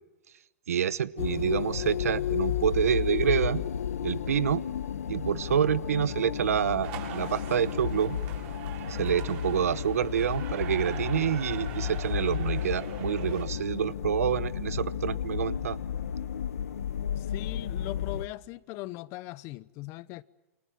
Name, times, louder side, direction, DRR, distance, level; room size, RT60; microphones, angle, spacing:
voice 1, 0.7-3.6 4.0-4.6 5.1-8.2 8.9-15.8, right 8 dB, 85° right, 1.1 m, -27 dB
sound 1, 1.2-18.3, left 9 dB, 85° left, 1.3 m, -32 dB
sound 2, 6.8-13.4, right 9 dB, 45° right, 6.6 m, -43 dB
voice 2, 17.1-20.2, left 18 dB, 35° left, 0.9 m, -40 dB
28.5 x 26.0 x 7.5 m
hypercardioid pair, 140°, 8 cm